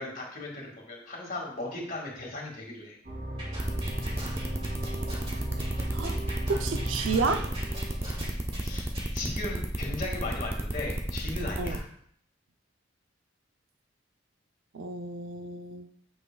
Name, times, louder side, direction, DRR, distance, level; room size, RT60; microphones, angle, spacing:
voice 1, 0.0-3.0 8.6-8.9 9.1-11.8, left 2 dB, 45° left, -1 dB, 2.1 m, -37 dB
sound 1, 3.0-8.3, right 1 dB, 50° right, 2.5 m, -37 dB
sound 2, 3.4-9.1, right 1 dB, 30° right, 2.5 m, -42 dB
sound 3, 3.6-11.8, right 1 dB, 15° right, 0.6 m, -32 dB
voice 2, 6.5-7.5 11.6-11.8 14.7-15.9, right 4 dB, 85° right, 8 dB, 0.6 m, -31 dB
8.2 x 6.0 x 2.3 m, 0.66 s
head